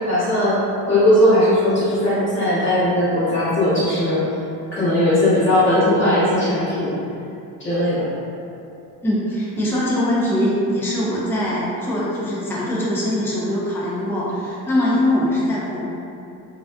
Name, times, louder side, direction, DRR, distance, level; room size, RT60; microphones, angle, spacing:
voice 1, 0.1-4.2 4.7-7.0 7.6-8.1, left 1 dB, 25° left, -11 dB, 1.2 m, -18 dB
voice 2, 9.0-15.8, left 1 dB, 5° left, -7 dB, 0.4 m, -22 dB
2.4 x 2.3 x 2.2 m, 2.6 s
supercardioid pair, 85°, 43 cm